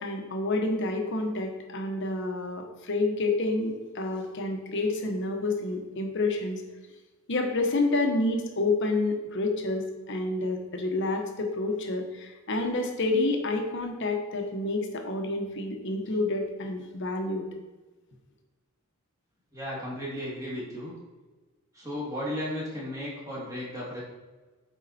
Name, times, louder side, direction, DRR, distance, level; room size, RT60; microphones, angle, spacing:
voice 1, 0.0-6.6 7.3-17.5, left 2 dB, 60° left, 4 dB, 1.1 m, -29 dB
voice 2, 19.5-20.9 21.7-24.0, left 1 dB, 15° right, -6 dB, 2.3 m, -35 dB
8.3 x 4.0 x 4.2 m, 1.2 s
head